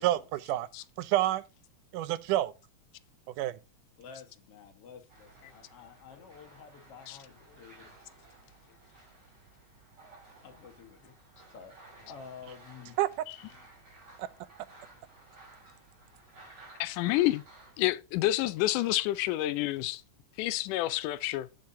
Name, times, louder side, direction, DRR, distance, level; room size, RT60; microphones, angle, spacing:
voice 1, 0.0-0.7 1.0-1.4 1.9-2.5 3.4-3.5 13.0-13.1, right 14 dB, 85° right, 2.3 m, -28 dB
voice 2, 4.0-7.9 10.4-11.8 12.0-13.0, left 6 dB, 55° left, 2.2 m, -50 dB
sound 1, 5.1-17.8, right 3 dB, 30° right, 5.8 m, -56 dB
voice 3, 16.8-17.4 17.8-20.0 20.4-21.5, left 16 dB, 90° left, 2.2 m, -28 dB
10.5 x 6.8 x 2.7 m
omnidirectional pair, 3.6 m